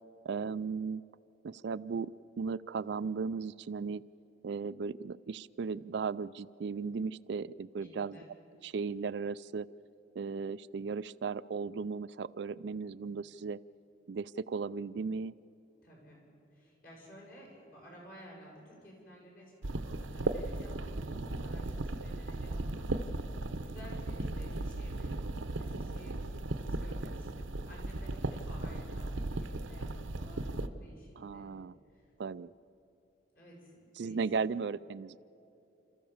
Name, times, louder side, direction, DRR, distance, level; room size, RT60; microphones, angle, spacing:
voice 1, 0.2-1.0 1.4-2.1 2.4-4.0 4.4-8.2 8.6-9.7 10.2-13.6 14.1-15.3 21.1-21.2 27.0-27.2 31.2-31.7 32.2-32.5 34.0-35.2, right 5 dB, 60° right, 16 dB, 0.4 m, -36 dB
voice 2, 7.8-8.3 15.8-16.2 16.5-31.5 31.9-32.1 33.3-34.3, equal, 45° left, -2 dB, 7.1 m, -54 dB
sound 1, 19.6-30.7, right 2 dB, 85° right, 0.9 m, -37 dB
28.5 x 14.5 x 7.2 m, 3.0 s
head